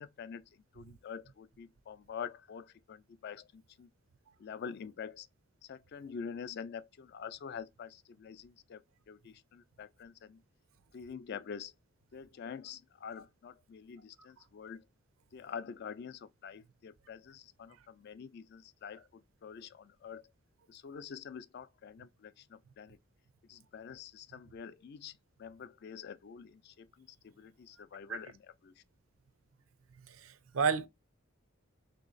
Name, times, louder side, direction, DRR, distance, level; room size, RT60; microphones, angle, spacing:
voice 1, 0.0-3.9 4.4-5.3 5.6-10.4 10.9-11.7 12.1-14.8 15.3-20.2 20.7-23.0 23.5-28.8, left 6 dB, 50° left, 0.3 m, -46 dB
voice 2, 30.1-30.9, right 5 dB, 80° right, 0.6 m, -31 dB
3.2 x 2.9 x 3.8 m
head